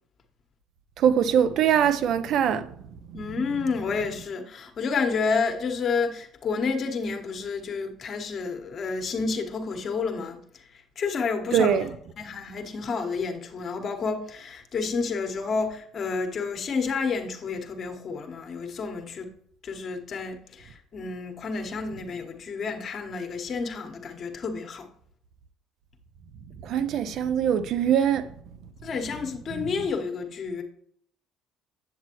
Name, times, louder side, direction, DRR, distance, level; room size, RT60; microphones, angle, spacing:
voice 1, 1.0-2.7 11.5-11.9 26.6-28.3, right 8 dB, 65° right, 0.6 m, -22 dB
voice 2, 3.1-19.3 19.6-24.9 28.8-30.6, left 4 dB, 50° left, 1.3 m, -30 dB
8.0 x 7.4 x 3.0 m
hypercardioid pair, 65°, 0 cm